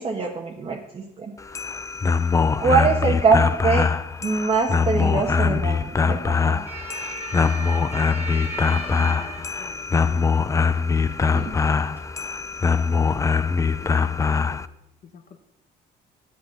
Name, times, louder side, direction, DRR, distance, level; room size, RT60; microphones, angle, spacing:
voice 1, 0.0-1.3 2.6-3.9 4.2-6.6 11.3-11.5, right 4 dB, 30° right, 0 dB, 1.1 m, -23 dB
sound 1, 1.4-14.7, left 5 dB, 20° left, 0.3 m, -22 dB
voice 2, 2.5-3.1 8.6-10.4 13.8-14.7 15.0-15.4, left 6 dB, 50° left, 6 dB, 1.0 m, -46 dB
sound 2, 4.0-13.9, right 2 dB, 15° right, 1.5 m, -40 dB
8.3 x 7.7 x 6.9 m, 0.86 s
cardioid pair, 110°, 17 cm